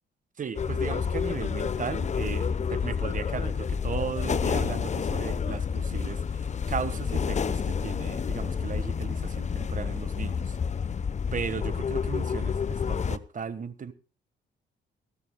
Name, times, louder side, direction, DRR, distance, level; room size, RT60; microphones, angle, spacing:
voice 1, 0.4-10.6 11.3-13.9, right 6 dB, 40° right, 1.4 m, -36 dB
sound 1, 0.5-13.2, left 6 dB, 35° left, 0.8 m, -29 dB
20.5 x 15.5 x 2.2 m
cardioid pair, 90°, 20 cm